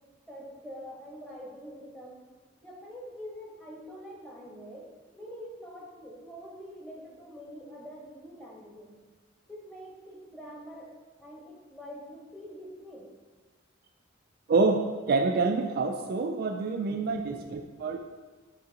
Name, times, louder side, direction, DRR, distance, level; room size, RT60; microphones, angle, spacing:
voice 1, 0.3-2.2 2.6-9.1 9.5-10.9 11.2-13.1 16.8-17.0 17.3-17.4, equal, 5° left, -4 dB, 1.2 m, -45 dB
voice 2, 14.5-18.0, right 3 dB, 50° right, 5 dB, 0.3 m, -27 dB
9.1 x 3.7 x 2.9 m, 1.3 s
head